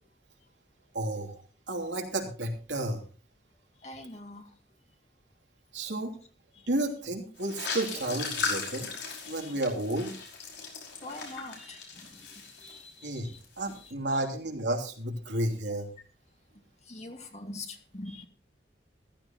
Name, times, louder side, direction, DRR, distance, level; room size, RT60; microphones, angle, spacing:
voice 1, 0.9-1.4 1.7-3.0 5.7-6.1 6.7-8.9 9.3-10.1 13.0-13.3 13.6-15.9, right 1 dB, 90° right, 1 dB, 3.0 m, -32 dB
voice 2, 3.8-4.6 6.6-6.7 9.2-9.6 11.0-13.4 13.7-13.9 16.8-18.3, left 2 dB, 40° left, 4 dB, 2.1 m, -44 dB
sound 1, 7.4-13.1 13.4-13.8, left 4 dB, 80° left, 5.2 m, -37 dB
15.0 x 14.0 x 3.0 m, 0.38 s
head